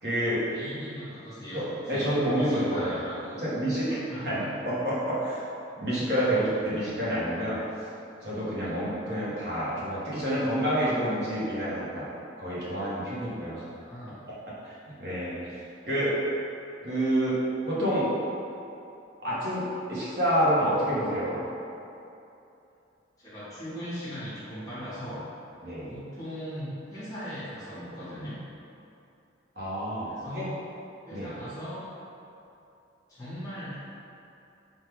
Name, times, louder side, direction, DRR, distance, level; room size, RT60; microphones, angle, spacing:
voice 1, 0.0-0.5 1.5-3.0 3.4-5.4 5.8-7.6 8.2-12.1 12.4-13.6 14.3-14.4 14.6-15.6 15.9-16.2 16.8-18.1 19.2-21.4 25.6-26.0 29.6-30.5 31.1-31.4, right 1 dB, 55° right, -9 dB, 1.0 m, -28 dB
voice 2, 0.5-3.5 4.1-4.5 8.6-8.8 13.8-14.2 23.2-25.3 25.9-28.4 30.0-30.6 31.1-31.8 33.1-33.8, equal, 20° left, -12 dB, 1.1 m, -39 dB
3.6 x 2.4 x 4.5 m, 2.8 s
head